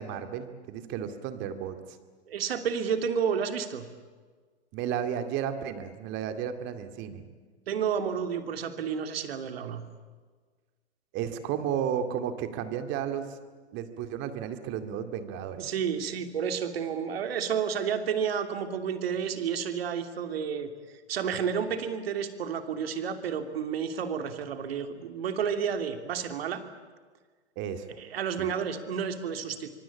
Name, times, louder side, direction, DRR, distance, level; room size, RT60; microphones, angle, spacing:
voice 1, 0.0-2.0 4.7-7.2 11.1-13.4 13.7-15.7 27.6-27.9 28.4-28.5, right 9 dB, 35° right, 8 dB, 2.3 m, -33 dB
voice 2, 2.3-3.9 7.7-9.8 15.6-20.7 21.1-26.6 28.0-29.7, right 7 dB, 60° right, 7 dB, 3.0 m, -31 dB
25.0 x 24.0 x 8.8 m, 1.5 s
figure-of-eight pair, 115°, 34 cm